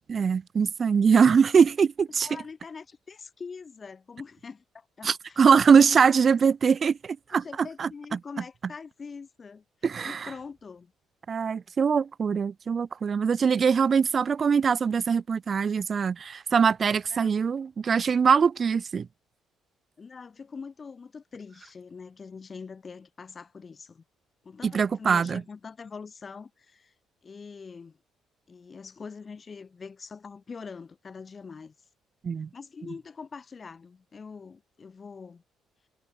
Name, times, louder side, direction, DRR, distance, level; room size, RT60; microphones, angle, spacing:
voice 1, 0.1-2.3 5.0-7.4 7.8-7.9 9.8-10.3 11.3-19.1 24.6-25.4 32.2-32.5, right 6 dB, 35° right, 0.4 m, -22 dB
voice 2, 2.2-5.4 5.8-6.0 7.3-9.6 10.0-10.9 17.1-17.3 20.0-24.0 24.4-26.9 27.2-28.0 28.5-31.7 32.5-35.4, left 5 dB, 25° left, 3.0 m, -43 dB
cardioid pair, 150°, 0 cm